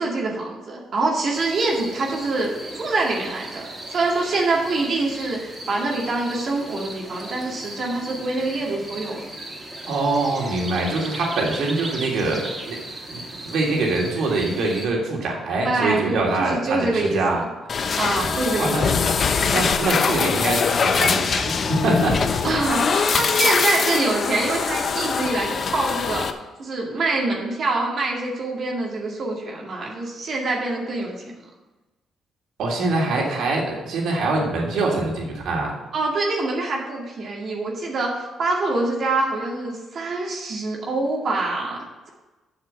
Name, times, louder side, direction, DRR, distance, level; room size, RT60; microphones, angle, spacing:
voice 1, 0.0-2.5 2.8-9.3 15.6-17.4 17.9-18.8 22.4-26.3 26.6-31.2 35.9-41.8, right 2 dB, 55° right, -2 dB, 2.2 m, -25 dB
sound 1, 1.3-14.9, right 1 dB, 30° right, 3.5 m, -37 dB
voice 2, 9.9-12.8 13.1-17.4 18.5-18.9 19.5-22.2 22.5-22.6 32.6-35.7, right 2 dB, 75° right, -2 dB, 3.0 m, -24 dB
sound 2, 17.7-26.3, left 5 dB, 50° left, 0.7 m, -22 dB
8.0 x 6.5 x 7.4 m, 1.1 s
cardioid pair, 90°, 0 cm